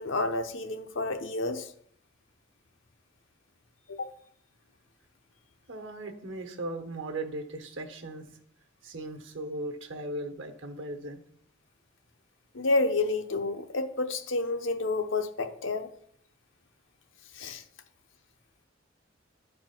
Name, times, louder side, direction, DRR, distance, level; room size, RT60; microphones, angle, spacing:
voice 1, 0.0-1.7 4.0-4.1 12.5-15.9 17.3-17.6, left 3 dB, 75° left, 7 dB, 0.8 m, -29 dB
voice 2, 5.7-8.2 8.8-11.2, right 1 dB, 75° right, 6 dB, 1.1 m, -37 dB
11.5 x 4.3 x 4.4 m, 0.66 s
head